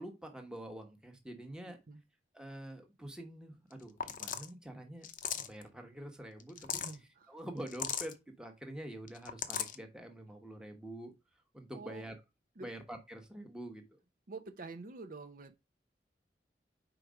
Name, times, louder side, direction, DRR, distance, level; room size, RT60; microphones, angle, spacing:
voice 1, 0.0-1.8 2.3-5.1 5.4-6.9 7.3-11.1 11.5-12.2 12.6-14.0, right 1 dB, 5° right, 1.1 m, -46 dB
voice 2, 1.6-2.0 6.8-7.3 11.7-12.0 12.6-12.7 14.3-15.5, right 3 dB, 50° right, 0.7 m, -47 dB
sound 1, 3.7-3.8 4.0-4.5 5.0-5.6 6.4-6.9 7.7-8.1 9.1-9.8, left 8 dB, 50° left, 0.7 m, -37 dB
5.0 x 4.6 x 5.0 m
head